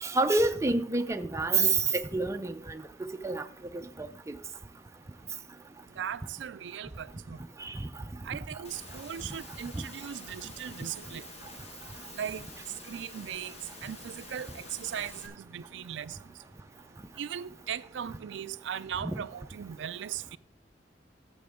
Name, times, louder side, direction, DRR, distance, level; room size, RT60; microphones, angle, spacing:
voice 1, 0.0-2.8 3.2-3.4 3.7-4.3 7.6-7.9 9.7-9.8 19.0-19.2, right 3 dB, 15° right, 0.5 m, -28 dB
voice 2, 6.0-7.5 8.2-11.2 12.1-12.5 12.9-16.2 17.2-20.4, right 9 dB, 75° right, 0.4 m, -38 dB
Engine / Mechanisms, 8.6-15.3, left 2 dB, 35° left, 1.6 m, -48 dB
11.5 x 7.7 x 3.6 m
head